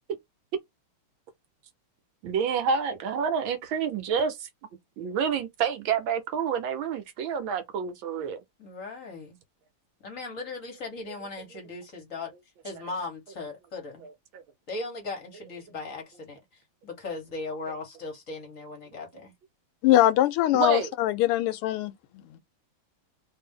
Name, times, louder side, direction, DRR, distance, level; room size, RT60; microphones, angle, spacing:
voice 1, 2.2-4.5 5.0-8.4 14.3-14.4 20.5-20.9, right 6 dB, 75° right, 1.4 m, -28 dB
voice 2, 8.6-9.4 10.0-12.3 12.6-14.0 14.7-19.3, left 3 dB, 45° left, 1.4 m, -38 dB
voice 3, 19.8-22.4, left 14 dB, 85° left, 1.5 m, -23 dB
3.3 x 2.7 x 3.5 m
omnidirectional pair, 2.4 m